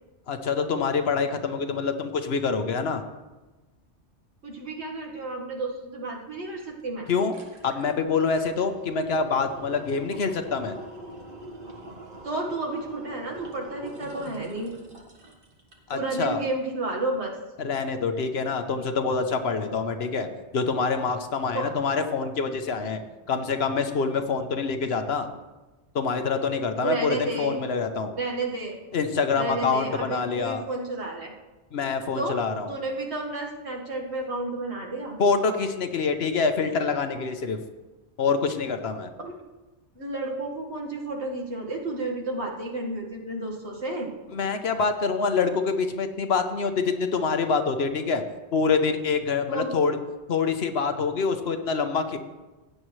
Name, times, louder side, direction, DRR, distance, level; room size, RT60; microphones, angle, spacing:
voice 1, 0.3-3.0 7.1-7.3 7.6-10.8 15.9-16.4 17.6-25.3 25.9-28.1 28.9-30.6 31.7-32.7 35.2-37.6 38.2-39.1 44.3-48.2 48.5-50.0 50.3-52.2, left 5 dB, 65° left, 7 dB, 1.1 m, -26 dB
voice 2, 4.4-7.1 12.2-14.7 15.9-17.3 21.5-21.7 26.8-27.6 28.2-28.8 29.3-31.3 32.1-32.4 32.7-35.2 39.2-39.4 40.0-44.1 49.5-49.8, right 2 dB, 75° right, -1 dB, 1.9 m, -31 dB
sound 1, 6.6-6.7 7.0-16.1 16.5-16.6, right 1 dB, 50° right, 1.6 m, -43 dB
16.0 x 8.7 x 3.2 m, 1.1 s
omnidirectional pair, 1.2 m